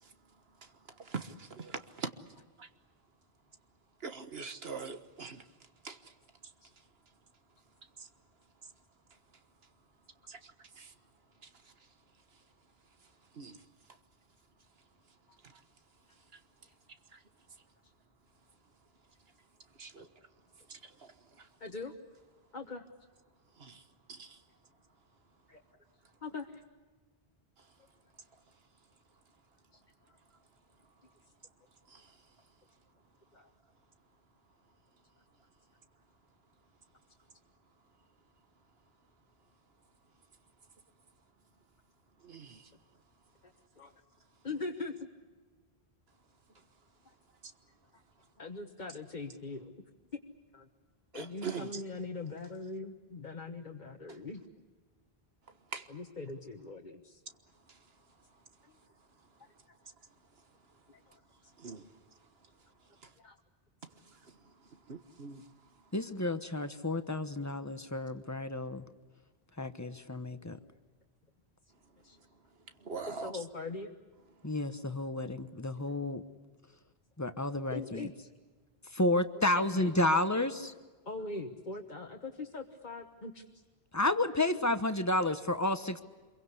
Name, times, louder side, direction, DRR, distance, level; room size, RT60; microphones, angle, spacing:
voice 1, 0.6-2.1 2.6-2.7 4.0-5.5 5.8-6.1 8.0-8.1 10.3-10.9 11.4-11.7 13.3-13.6 15.4-15.6 16.3-16.4 17.1-17.2 19.8-20.1 20.7-21.5 23.6-23.8 24.1-24.4 27.6-27.7 31.9-32.2 42.2-42.7 47.4-47.5 51.1-51.8 55.7-55.9 57.7-57.8 61.6-61.9 63.0-63.1 64.0-65.5 72.8-73.3, right 5 dB, 70° right, 1.6 m, -44 dB
voice 2, 21.6-21.9 22.5-22.8 24.5-24.6 25.5-25.6 26.2-26.6 29.7-29.8 33.3-33.5 43.8-43.9 44.4-45.0 47.0-47.1 47.9-48.0 48.4-49.7 50.1-50.2 50.5-50.7 51.1-54.4 55.9-57.2 58.6-58.8 60.9-61.5 63.2-63.4 70.4-70.5 72.0-72.2 73.1-73.9 77.7-78.3 79.5-79.9 81.0-83.6, left 3 dB, 45° left, 1.5 m, -42 dB
voice 3, 65.9-68.8 69.6-70.6 74.4-76.2 77.2-78.1 78.9-80.7 83.9-86.0, left 1 dB, 15° left, 1.1 m, -31 dB
27.0 x 23.0 x 8.3 m
omnidirectional pair, 1.1 m